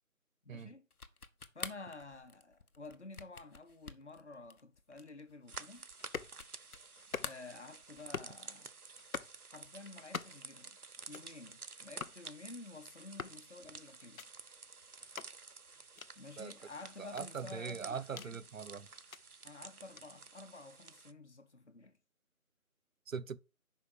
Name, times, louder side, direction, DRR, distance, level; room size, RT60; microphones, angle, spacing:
voice 1, 0.4-0.9 1.5-5.9 7.2-8.7 9.5-10.8 11.1-14.3 16.2-18.5 19.4-22.0, left 3 dB, 50° left, 1.0 m, -51 dB
sound 1, 0.9-6.9 7.2-8.2, left 4 dB, 85° left, 1.0 m, -48 dB
sound 2, 5.5-21.1, right 4 dB, 85° right, 0.8 m, -52 dB
sound 3, 6.0-6.4 7.0-7.5 8.0-8.4 9.0-9.4 10.0-10.5 11.0-11.3 12.0-12.2 13.0-13.4 14.0-14.3 15.0-15.3 16.0-16.1 17.0-18.3 18.9-19.2 20.0-20.1, left 5 dB, 70° left, 0.6 m, -45 dB
voice 2, 17.0-18.9 23.1-23.4, right 6 dB, 65° right, 0.5 m, -41 dB
5.4 x 5.1 x 6.6 m
figure-of-eight pair, 170°, 43 cm